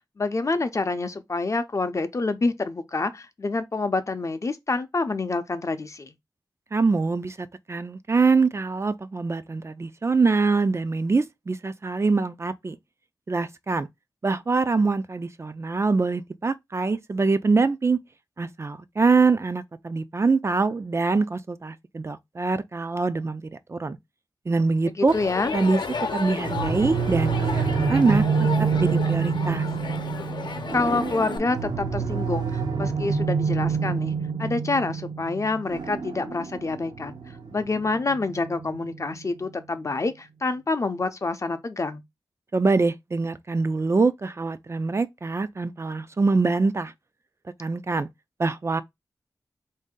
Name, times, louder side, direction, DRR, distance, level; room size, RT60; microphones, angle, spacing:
voice 1, 0.2-6.1 25.0-25.5 30.7-34.1 34.4-37.1 37.5-42.0, left 3 dB, 40° left, 0.6 m, -27 dB
voice 2, 6.7-12.8 13.3-13.9 14.2-18.0 18.4-23.4 23.7-24.0 24.5-25.1 25.5-25.8 26.1-28.2 28.6-29.6 42.5-46.9 47.6-48.1 48.4-48.8, right 4 dB, 35° right, 0.4 m, -24 dB
Crowd, 25.1-31.4, left 5 dB, 80° left, 0.7 m, -33 dB
sound 1, 26.4-39.2, right 5 dB, 70° right, 0.7 m, -27 dB
4.1 x 2.7 x 3.7 m
wide cardioid pair, 100°, 8 cm